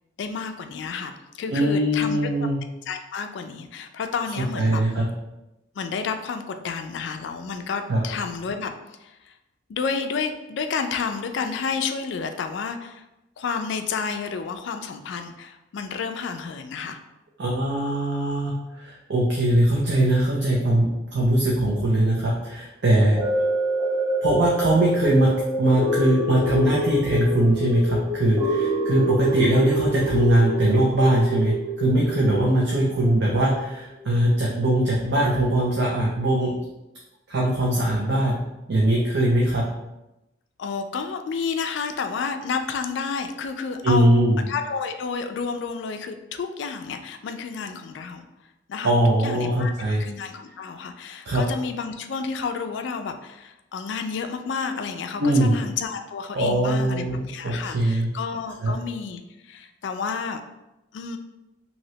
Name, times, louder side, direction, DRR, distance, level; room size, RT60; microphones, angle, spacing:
voice 1, 0.2-2.3 2.9-4.8 5.8-8.7 9.0-9.3 9.7-13.0 13.4-17.0 40.6-44.1 44.5-48.3 48.7-48.9 49.2-49.7 50.0-60.4 60.9-61.2, left 5 dB, 65° left, 7 dB, 0.3 m, -30 dB
voice 2, 1.5-2.6 4.6-5.1 7.9-8.0 17.4-23.2 24.2-25.3 25.6-36.6 37.3-38.4 38.7-39.7 43.8-44.4 48.8-50.0 51.3-51.4 55.2-55.5 56.3-58.1 58.6-58.7, right 1 dB, 60° right, -3 dB, 0.5 m, -21 dB
sound 1, 23.2-33.5 34.0-34.1, equal, 25° right, 0.9 m, -26 dB
3.1 x 2.8 x 2.7 m, 0.94 s
head